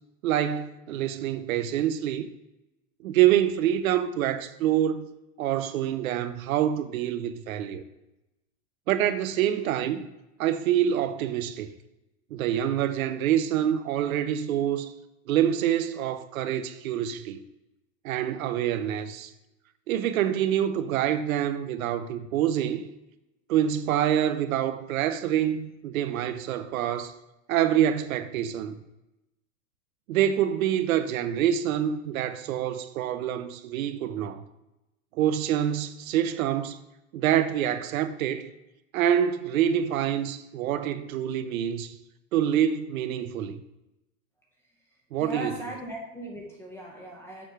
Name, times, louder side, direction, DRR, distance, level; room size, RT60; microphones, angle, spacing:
voice 1, 0.2-2.3 3.0-5.1 5.4-7.8 8.9-10.1 10.4-11.7 12.3-14.9 15.3-17.4 18.0-19.3 19.9-22.9 23.5-27.1 27.5-28.8 30.1-34.4 35.1-36.8 37.1-38.5 38.9-42.0 42.3-43.6 45.1-45.7, right 10 dB, 85° right, 0.8 m, -26 dB
voice 2, 45.2-47.5, right 1 dB, 5° left, 0.5 m, -38 dB
7.0 x 3.3 x 5.9 m
supercardioid pair, 170°, 40 cm